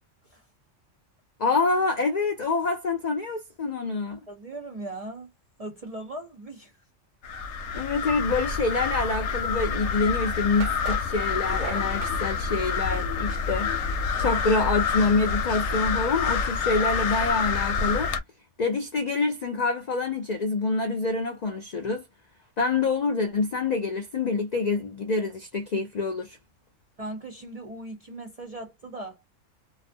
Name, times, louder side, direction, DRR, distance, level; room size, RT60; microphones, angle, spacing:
voice 1, 1.4-4.2 7.7-13.8 14.2-18.1 18.6-22.0 22.6-26.4, left 3 dB, 85° left, 0.3 m, -26 dB
voice 2, 4.3-5.3 5.6-6.7 27.0-29.2, right 2 dB, 55° right, 0.4 m, -38 dB
sound 1, 7.2-18.2, left 5 dB, 70° left, 0.8 m, -27 dB
sound 2, 9.8-9.9 10.6-12.2, right 10 dB, 90° right, 1.0 m, -38 dB
2.4 x 2.0 x 2.5 m
omnidirectional pair, 1.3 m